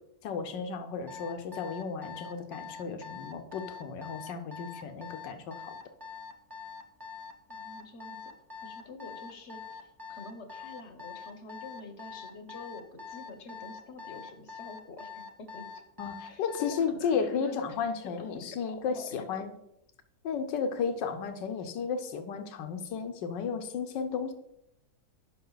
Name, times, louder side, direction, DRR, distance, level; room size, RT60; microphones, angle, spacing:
voice 1, 0.2-5.7 16.0-19.5 20.2-24.3, left 6 dB, 80° left, 8 dB, 1.6 m, -33 dB
Alarm, 1.1-16.9, left 5 dB, 20° right, 0.6 m, -44 dB
voice 2, 7.5-8.3 8.6-15.6 16.3-16.4 16.9-17.7 18.0-19.5 21.6-21.7, left 3 dB, 45° left, 8 dB, 1.1 m, -47 dB
10.0 x 5.8 x 4.0 m, 0.82 s
omnidirectional pair, 1.9 m